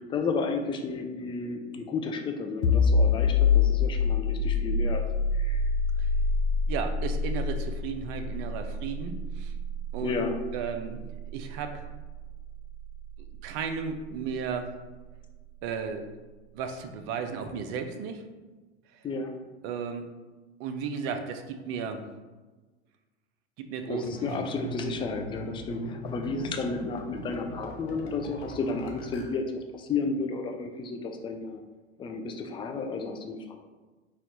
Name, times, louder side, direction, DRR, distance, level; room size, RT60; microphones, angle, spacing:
voice 1, 0.1-5.0 5.3-5.6 10.0-10.4 19.0-19.3 23.9-31.6 32.0-33.5, left 4 dB, 15° left, 4 dB, 0.4 m, -32 dB
sound 1, 2.6-14.1, left 4 dB, 90° left, 0.5 m, -27 dB
voice 2, 6.7-9.5 9.9-10.2 10.5-11.9 13.4-14.7 15.6-16.0 16.5-18.2 18.9-19.1 19.6-20.1 20.6-22.1 23.6-24.1 24.3-24.4, right 6 dB, 45° right, 7 dB, 0.6 m, -34 dB
sound 2, 24.1-29.2, right 1 dB, 65° left, 0.9 m, -40 dB
4.3 x 2.4 x 4.1 m, 1.2 s
hypercardioid pair, 85°, 34 cm